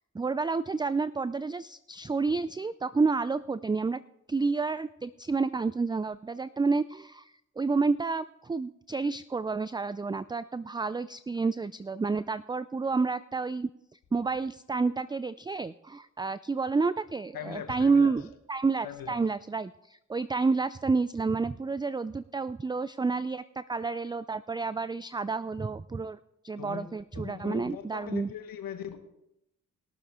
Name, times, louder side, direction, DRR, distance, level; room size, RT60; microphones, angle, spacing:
voice 1, 0.1-4.0 4.3-7.3 7.6-13.7 14.1-26.2 26.4-28.3, right 4 dB, 15° right, 0.4 m, -29 dB
voice 2, 17.3-18.1 18.8-19.2 26.6-29.0, left 9 dB, 85° left, 1.4 m, -40 dB
21.0 x 7.2 x 3.6 m
supercardioid pair, 40°, 34 cm